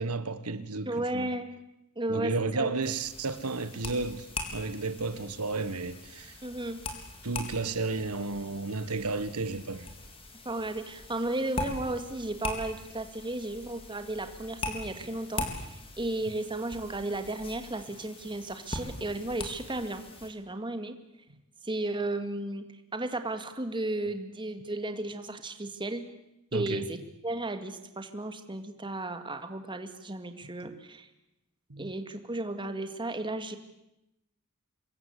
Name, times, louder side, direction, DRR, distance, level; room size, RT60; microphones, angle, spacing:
voice 1, 0.0-1.3 2.1-4.3 4.5-6.4 7.2-9.9 26.5-26.9 30.6-30.8 31.7-31.9, right 3 dB, 90° right, 1.5 m, -32 dB
voice 2, 0.9-1.5 2.0-2.8 6.4-6.8 10.5-20.9 21.6-22.6 22.9-26.0 26.5-27.0 27.2-31.1 31.8-33.6, right 2 dB, 20° right, 2.2 m, -34 dB
sound 1, 2.8-20.3, left 2 dB, 25° left, 4.2 m, -41 dB
27.0 x 22.5 x 8.4 m
head